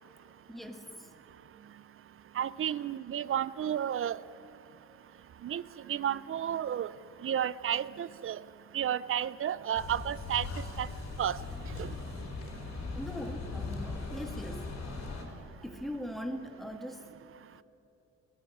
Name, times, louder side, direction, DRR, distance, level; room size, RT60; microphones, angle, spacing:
voice 1, 0.5-1.1 12.0-12.1 12.9-14.8 15.6-17.1 17.5-17.6, equal, ahead, 5 dB, 1.9 m, -41 dB
voice 2, 2.4-4.2 5.4-5.6 5.9-6.9 7.2-8.4 8.7-10.5 10.8-10.9 11.2-11.4 11.8-11.9, right 10 dB, 45° right, 19 dB, 0.6 m, -32 dB
sound 1, 9.7-15.2, left 3 dB, 60° left, 4.5 m, -39 dB
20.5 x 13.5 x 9.9 m, 2.8 s
cardioid pair, 90°, 30 cm